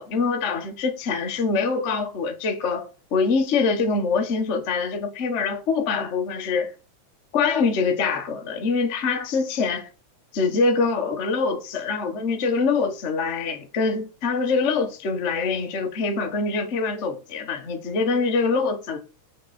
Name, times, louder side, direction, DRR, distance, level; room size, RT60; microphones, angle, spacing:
voice 1, 0.0-6.7 7.3-9.9 10.3-19.0, left 4 dB, 90° left, 0.6 m, -24 dB
8.9 x 4.6 x 4.2 m
omnidirectional pair, 3.4 m